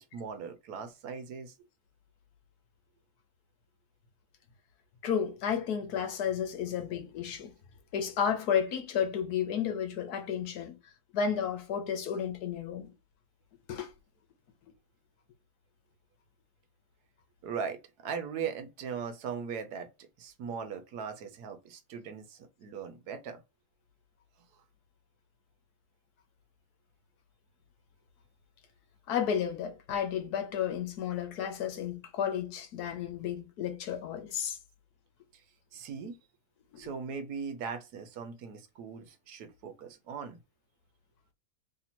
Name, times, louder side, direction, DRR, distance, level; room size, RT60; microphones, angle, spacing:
voice 1, 0.0-1.5 17.4-19.9 20.2-23.4 35.7-36.2 36.8-40.4, right 6 dB, 75° right, 1.2 m, -39 dB
voice 2, 5.0-7.5 7.9-10.8 11.1-12.9 13.7-13.9 29.1-34.6 36.7-36.8, left 8 dB, 80° left, 1.3 m, -32 dB
3.2 x 2.8 x 4.1 m
omnidirectional pair, 1.7 m